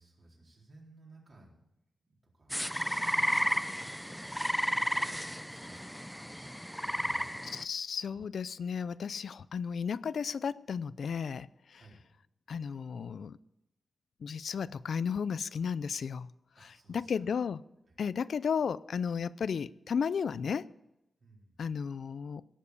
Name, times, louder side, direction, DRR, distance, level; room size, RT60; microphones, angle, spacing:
voice 1, 0.0-1.6 2.1-2.6 2.9-3.5 5.4-5.9 6.3-6.6 7.0-7.3 11.7-12.0 16.5-17.3 17.9-18.0 21.2-21.6, right 2 dB, 50° right, 4.1 m, -59 dB
sound 1, 2.5-7.6, equal, ahead, 0.4 m, -33 dB
voice 2, 7.4-11.5 12.5-13.4 14.2-16.3 16.6-17.6 18.0-20.7 21.6-22.4, left 6 dB, 75° left, 0.4 m, -34 dB
17.5 x 7.4 x 8.3 m
wide cardioid pair, 135°, 0 cm